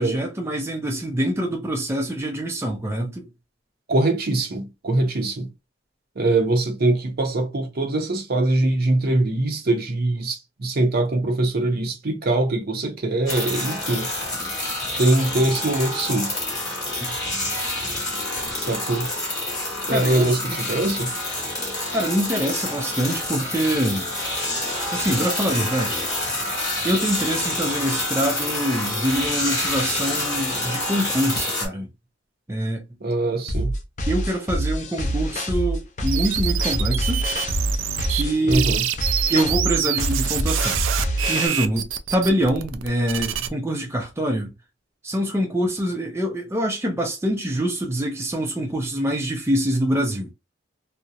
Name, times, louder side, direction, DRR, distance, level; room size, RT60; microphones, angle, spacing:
voice 1, 0.0-3.3 17.0-17.2 19.9-20.6 21.9-24.1 24.9-26.1 26.8-31.9 32.5-32.8 34.1-37.2 38.1-38.7 39.3-40.9 41.3-44.5 45.0-50.3, right 1 dB, 15° right, 0.4 m, -25 dB
voice 2, 3.9-5.5 6.2-14.1 15.0-16.3 18.6-19.1 19.8-21.1 33.0-33.7 38.4-38.8, right 2 dB, 55° right, 0.7 m, -22 dB
sound 1, 13.3-31.7, left 1 dB, 20° left, 1.0 m, -27 dB
sound 2, 33.5-41.5, equal, 40° left, 0.5 m, -26 dB
sound 3, 36.1-38.2 38.5-43.5, right 10 dB, 85° right, 0.3 m, -26 dB
2.7 x 2.0 x 2.3 m
head